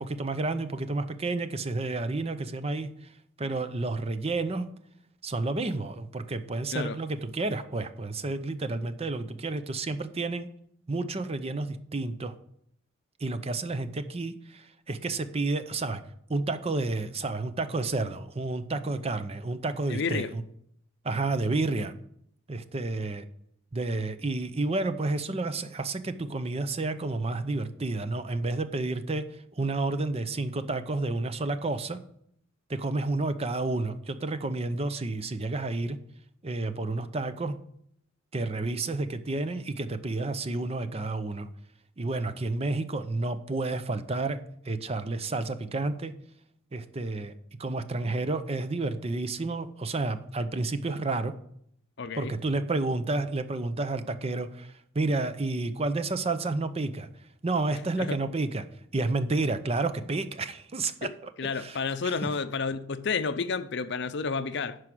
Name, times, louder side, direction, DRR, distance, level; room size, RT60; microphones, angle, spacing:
voice 1, 0.0-4.7 5.2-10.5 10.9-12.4 13.2-16.0 16.3-20.4 21.0-21.9 22.5-23.3 23.7-32.0 32.7-36.0 36.4-37.5 38.3-41.5 42.0-44.4 44.6-46.1 46.7-47.3 47.6-51.3 52.2-57.1 57.4-58.7 58.9-61.3 61.6-61.8 62.0-62.2, right 2 dB, 30° right, 0.6 m, -30 dB
voice 2, 19.9-20.3 52.0-52.3 58.0-58.2 61.0-61.1 61.4-64.8, left 5 dB, 60° left, 0.6 m, -30 dB
11.0 x 4.8 x 6.1 m
head